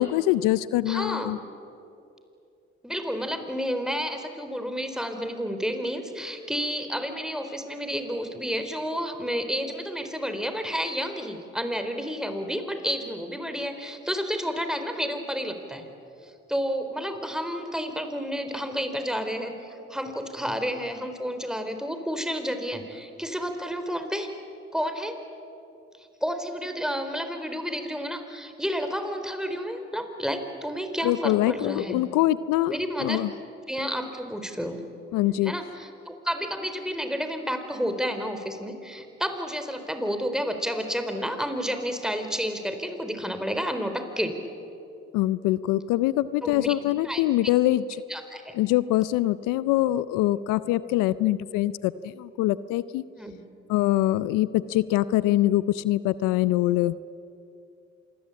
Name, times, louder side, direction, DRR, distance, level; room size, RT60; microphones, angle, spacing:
voice 1, 0.0-1.4 31.0-33.3 35.1-35.5 45.1-47.9 48.5-53.0 53.7-56.9, left 15 dB, 85° left, 17 dB, 0.6 m, -24 dB
voice 2, 0.9-1.4 2.8-15.9 16.2-24.3 24.7-25.2 26.2-32.0 32.7-33.3 33.7-34.8 35.4-44.4 46.4-46.7 47.0-47.2 48.1-48.5 53.2-53.4, equal, ahead, 7 dB, 4.4 m, -30 dB
27.0 x 21.5 x 8.6 m, 2.6 s
hypercardioid pair, 45°, 31 cm